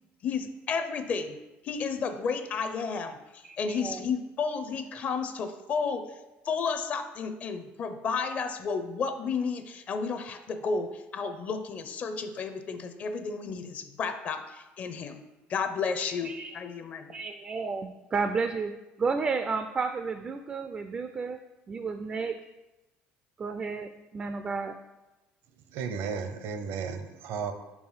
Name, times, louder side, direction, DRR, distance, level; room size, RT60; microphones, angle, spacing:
voice 1, 0.2-1.4 1.6-6.2 6.4-15.2 15.5-17.2, left 5 dB, 40° left, 8 dB, 0.6 m, -32 dB
voice 2, 3.4-4.0 16.0-16.5 17.1-18.7 19.0-21.4 21.7-22.4 23.4-24.7, right 4 dB, 25° right, 8 dB, 0.3 m, -32 dB
voice 3, 25.7-27.5, right 6 dB, 70° right, 8 dB, 0.7 m, -34 dB
5.5 x 4.8 x 5.5 m, 1.0 s
cardioid pair, 145°, 4 cm